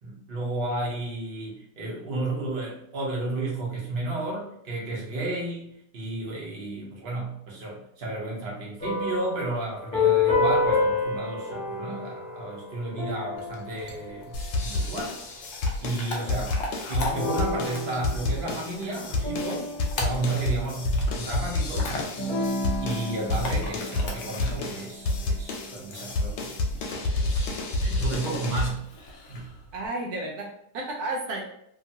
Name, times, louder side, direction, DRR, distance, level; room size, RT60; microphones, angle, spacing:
voice 1, 0.0-15.1 15.8-16.5 16.9-21.9 22.4-26.5 26.8-27.5 27.8-28.9 29.3-29.5, right 2 dB, 45° right, -3 dB, 0.7 m, -32 dB
sound 1, 8.8-14.8 17.1-20.9 22.2-24.8, left 3 dB, 35° left, 1.0 m, -29 dB
Chewing mastication / Dog, 13.4-29.9, left 2 dB, 65° left, 0.8 m, -40 dB
sound 2, 14.3-28.7, left 2 dB, 85° left, 1.2 m, -29 dB
voice 2, 29.7-31.4, right 2 dB, 70° right, 0 dB, 1.0 m, -32 dB
2.9 x 2.3 x 2.7 m, 0.73 s
omnidirectional pair, 1.9 m